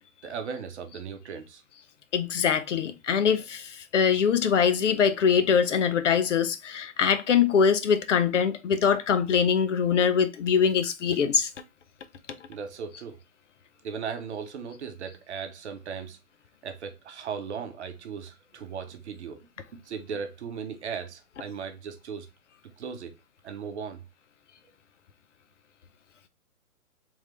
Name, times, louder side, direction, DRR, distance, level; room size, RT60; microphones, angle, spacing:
voice 1, 0.2-1.6 12.5-13.2 13.8-16.2 16.6-22.3 22.8-23.1 23.4-24.0, right 6 dB, 50° right, 0.8 m, -37 dB
voice 2, 2.1-11.5, left 7 dB, 55° left, 0.6 m, -23 dB
3.5 x 3.2 x 3.2 m
hypercardioid pair, 145°, 44 cm